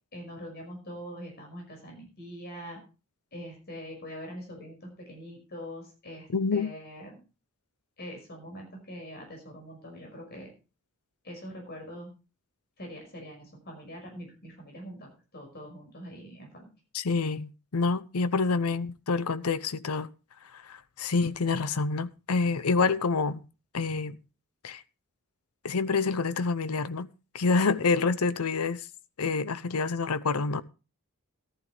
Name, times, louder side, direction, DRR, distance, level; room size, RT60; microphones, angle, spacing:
voice 1, 0.1-2.8 3.3-7.2 8.0-10.5 11.2-12.1 12.8-16.7, equal, 45° left, 5.6 m, -43 dB
voice 2, 6.3-6.7 16.9-20.1 20.7-23.4 23.7-24.2 24.6-24.8 25.6-27.1 27.3-28.8 29.2-30.6, left 4 dB, 75° left, 0.7 m, -27 dB
14.5 x 12.0 x 3.3 m
head